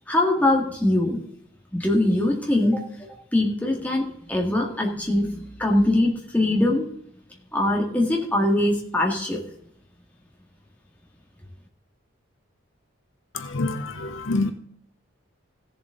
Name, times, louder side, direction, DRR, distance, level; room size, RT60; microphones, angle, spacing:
voice 1, 0.1-1.2 1.7-2.8 3.3-6.8 7.5-9.4, left 1 dB, 5° left, 0 dB, 1.9 m, -22 dB
voice 2, 13.3-14.5, left 2 dB, 65° left, 9 dB, 0.9 m, -26 dB
16.0 x 7.5 x 3.9 m, 0.69 s
head